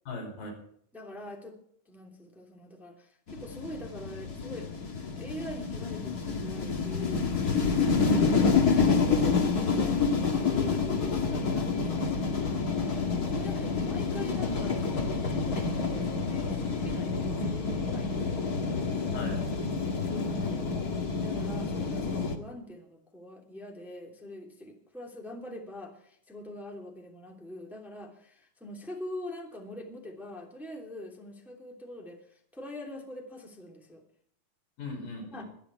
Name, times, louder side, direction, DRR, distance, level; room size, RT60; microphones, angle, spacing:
voice 1, 0.1-0.6 7.7-8.4 19.1-19.4 34.8-35.4, left 2 dB, 90° left, 1 dB, 7.0 m, -38 dB
voice 2, 0.9-1.6 1.9-4.7 5.2-7.3 8.1-12.4 12.7-18.5 19.1-19.5 19.7-20.8 21.2-32.2 32.5-34.0 35.3-35.4, left 1 dB, ahead, 0 dB, 2.5 m, -44 dB
sound 1, 3.3-22.4, left 5 dB, 40° left, 1.6 m, -28 dB
24.0 x 10.0 x 4.6 m, 0.64 s
omnidirectional pair, 3.8 m